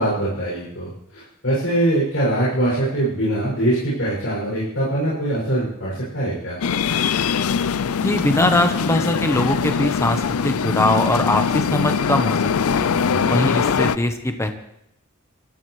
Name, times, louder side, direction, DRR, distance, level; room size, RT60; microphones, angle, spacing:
voice 1, 0.0-6.6 13.0-13.2, right 1 dB, 65° left, -8 dB, 6.8 m, -23 dB
sound 1, 6.6-14.0, left 6 dB, 90° left, 0.5 m, -22 dB
voice 2, 8.0-12.4 12.7-12.9 13.3-14.5, left 1 dB, 15° left, 6 dB, 1.0 m, -21 dB
24.5 x 14.5 x 3.3 m, 0.80 s
head